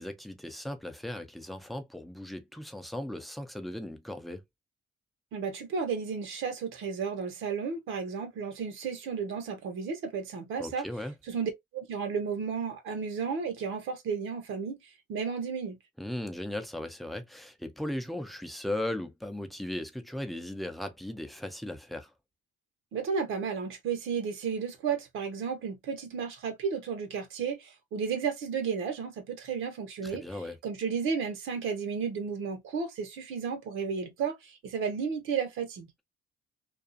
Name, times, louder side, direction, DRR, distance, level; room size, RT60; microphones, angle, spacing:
voice 1, 0.0-4.4 10.6-11.1 16.0-22.1 30.0-30.6, left 1 dB, ahead, 0.6 m, -37 dB
voice 2, 5.3-10.8 11.3-14.8 15.1-15.8 22.9-30.2 30.6-35.9, right 6 dB, 85° right, 0.9 m, -33 dB
2.5 x 2.3 x 2.5 m
cardioid pair, 90°, 20 cm